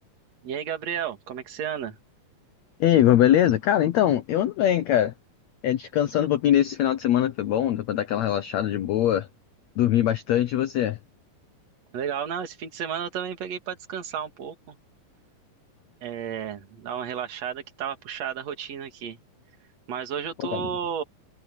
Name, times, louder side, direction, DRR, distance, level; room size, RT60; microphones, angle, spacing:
voice 1, 0.4-2.0 11.9-14.8 16.0-19.2 19.9-21.0, right 8 dB, 50° right, 3.2 m, -32 dB
voice 2, 2.8-5.1 5.6-9.3 9.8-11.0 20.5-20.7, left 11 dB, 75° left, 1.6 m, -22 dB
omnidirectional pair, 4.1 m